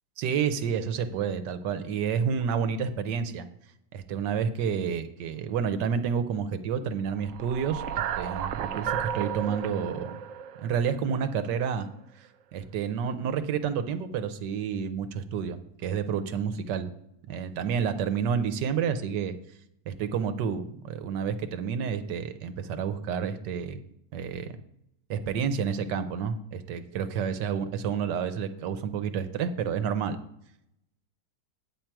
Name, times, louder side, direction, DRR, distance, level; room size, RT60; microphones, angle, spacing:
voice 1, 0.2-3.5 3.9-10.2 10.6-11.9 12.2-16.9 17.3-19.3 19.9-23.8 24.1-24.5 25.1-30.2, right 7 dB, 85° right, 10 dB, 1.4 m, -29 dB
sound 1, 7.2-11.5, right 9 dB, 70° right, 0.7 m, -33 dB
8.8 x 7.5 x 4.6 m, 0.77 s
omnidirectional pair, 1.8 m